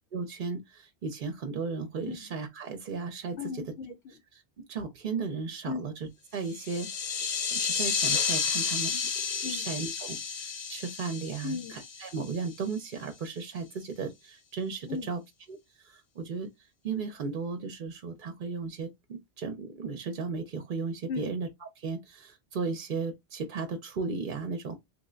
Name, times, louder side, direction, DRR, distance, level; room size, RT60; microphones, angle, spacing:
voice 1, 0.1-3.4 4.3-4.4 4.7-6.9 7.2-15.2 15.5-16.5 16.8-24.8, right 4 dB, 55° right, 0.7 m, -35 dB
voice 2, 3.4-4.2 5.6-5.9 9.4-9.7 11.4-11.8 14.9-15.1 21.1-21.3, left 5 dB, 75° left, 0.9 m, -36 dB
sound 1, 6.4-12.5, left 6 dB, 55° left, 0.4 m, -31 dB
3.3 x 2.1 x 3.6 m
omnidirectional pair, 1.1 m